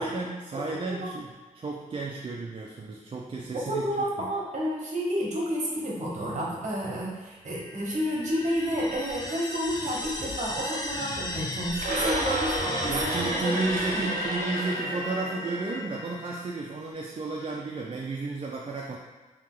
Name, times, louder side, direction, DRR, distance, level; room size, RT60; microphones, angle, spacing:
voice 1, 0.0-3.8 4.2-4.3 12.9-19.0, right 3 dB, 40° right, -3 dB, 0.4 m, -33 dB
voice 2, 0.7-1.1 3.5-13.5 13.9-14.1, equal, 55° right, -4 dB, 1.1 m, -30 dB
sound 1, 7.5-16.8, left 2 dB, 25° left, 0.4 m, -35 dB
sound 2, 11.7-15.9, right 2 dB, 85° right, 0.7 m, -31 dB
3.4 x 2.8 x 3.7 m, 1.3 s
wide cardioid pair, 110°, 14 cm